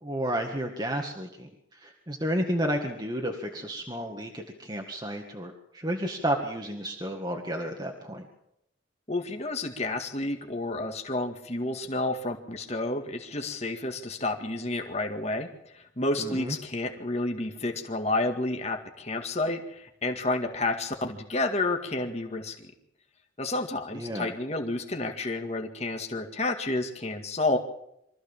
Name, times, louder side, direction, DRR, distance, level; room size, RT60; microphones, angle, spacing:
voice 1, 0.0-8.2 16.2-16.6 23.9-24.3, equal, 20° right, 1 dB, 1.8 m, -32 dB
voice 2, 9.1-15.5 15.7-22.7 23.4-27.6, left 2 dB, 35° left, 4 dB, 2.0 m, -30 dB
24.5 x 15.0 x 7.4 m, 0.79 s
head